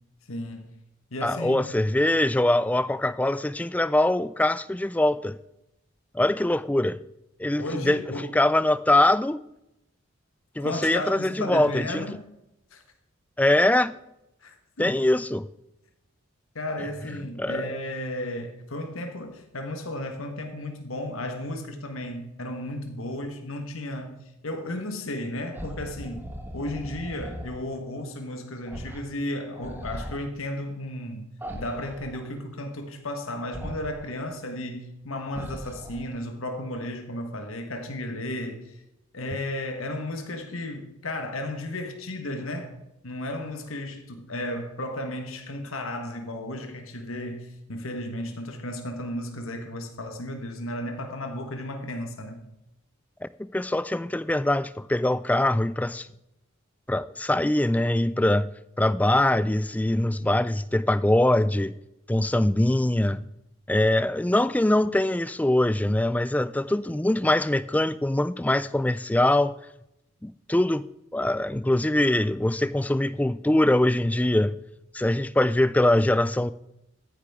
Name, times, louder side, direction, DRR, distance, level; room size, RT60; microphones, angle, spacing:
voice 1, 0.3-0.7 1.1-1.6 7.5-8.4 10.6-12.3 12.7-12.8 14.4-15.0 16.5-31.2 31.5-38.8 39.1-42.8 43.0-52.5, left 1 dB, 85° left, 1.5 m, -34 dB
voice 2, 1.2-5.4 6.1-7.0 7.4-9.4 10.6-12.0 13.4-14.0 14.8-15.5 17.4-17.7 53.5-56.1 56.9-58.5 58.8-61.7 62.1-63.2 63.7-69.5 70.2-70.8 71.1-74.5 74.9-76.5, left 1 dB, 5° left, 0.3 m, -23 dB
sound 1, 25.5-27.6 28.7-29.0 29.4-30.2 31.4-32.3 33.5-34.1 35.3-36.2, equal, 10° right, 1.3 m, -39 dB
14.5 x 9.8 x 3.6 m
head